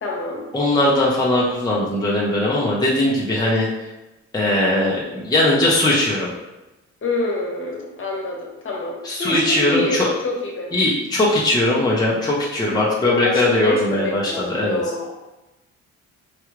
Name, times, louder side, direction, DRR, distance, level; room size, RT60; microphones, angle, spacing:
voice 1, 0.0-0.4 2.8-2.9 3.3-3.4 7.0-8.9 9.2-10.7 13.0-15.1, left 2 dB, 45° left, -2 dB, 1.1 m, -26 dB
voice 2, 0.5-3.7 4.3-6.3 9.0-10.1 10.7-14.8, left 1 dB, 15° left, -5 dB, 0.7 m, -19 dB
4.8 x 2.3 x 3.1 m, 1.0 s
cardioid pair, 90°, 30 cm